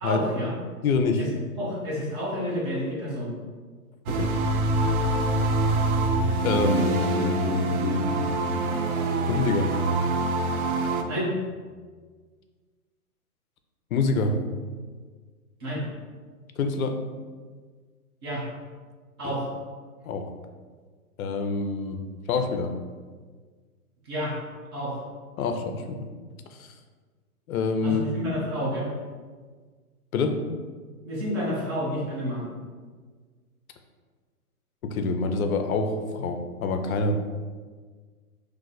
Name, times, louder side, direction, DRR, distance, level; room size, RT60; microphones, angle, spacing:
voice 1, 0.0-0.5 1.2-1.3 1.6-3.3 11.1-11.3 15.6-15.8 18.2-18.4 19.2-19.5 24.1-24.3 24.7-25.0 27.8-28.9 31.0-32.4, equal, 20° right, -6 dB, 0.4 m, -29 dB
voice 2, 0.8-1.3 4.1-4.3 6.4-8.7 9.3-9.7 13.9-14.4 16.6-17.0 19.2-19.4 20.0-20.3 21.2-22.0 22.3-22.7 25.4-26.1 26.6-26.7 27.5-28.0 30.1-30.5 34.8-37.2, left 4 dB, 65° left, 6 dB, 0.6 m, -26 dB
sound 1, 4.1-11.0, right 2 dB, 70° right, 0.5 m, -25 dB
2.5 x 2.4 x 3.9 m, 1.5 s
hypercardioid pair, 135°, 46 cm